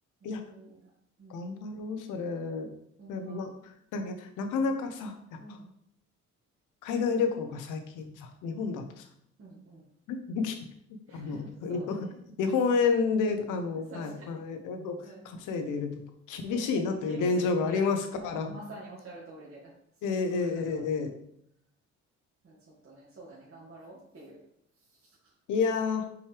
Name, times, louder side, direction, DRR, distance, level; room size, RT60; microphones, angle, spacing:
voice 1, 0.2-0.9 1.2-1.5 3.0-3.7 5.4-5.6 9.4-9.8 11.1-12.2 13.7-14.4 15.0-15.3 16.4-19.7 20.0-21.0 22.4-24.4 24.9-25.3, right 2 dB, 45° right, -6 dB, 2.1 m, -47 dB
voice 2, 1.3-2.7 3.1-3.5 3.9-5.4 6.8-9.0 10.1-10.6 11.1-12.0 12.4-18.5 20.0-21.1 25.5-26.1, left 4 dB, 90° left, 6 dB, 1.0 m, -30 dB
5.5 x 5.3 x 3.4 m, 0.72 s
cardioid pair, 90°, 30 cm